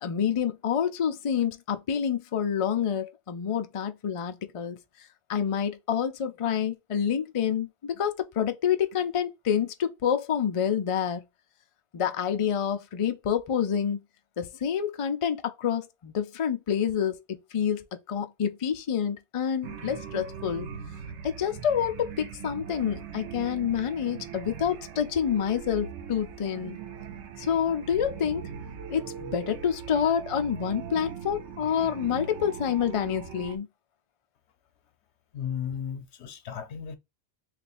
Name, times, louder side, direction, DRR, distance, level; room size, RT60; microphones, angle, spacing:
voice 1, 0.0-4.8 5.3-11.2 11.9-14.0 14.4-20.7 21.2-26.8 27.4-28.5 28.9-33.7, left 8 dB, 50° left, 0.4 m, -28 dB
sound 1, 19.6-33.6, right 7 dB, 85° right, 1.0 m, -40 dB
voice 2, 35.3-37.0, left 8 dB, 80° left, 1.0 m, -34 dB
3.1 x 2.5 x 4.1 m
omnidirectional pair, 1.1 m